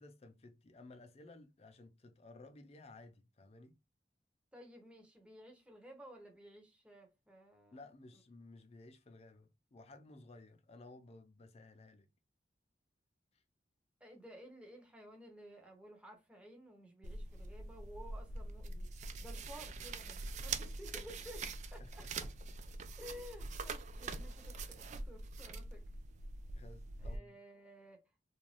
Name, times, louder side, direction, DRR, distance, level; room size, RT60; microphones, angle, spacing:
voice 1, 0.0-3.8 7.7-12.1 21.8-22.1 22.8-23.0 26.5-27.4, left 2 dB, 35° left, 0.4 m, -56 dB
voice 2, 4.5-7.8 14.0-18.9 19.2-22.1 23.0-25.8 27.0-28.0, equal, 5° right, 0.7 m, -54 dB
sound 1, 17.0-27.2, right 3 dB, 40° right, 0.3 m, -44 dB
2.5 x 2.2 x 3.1 m
head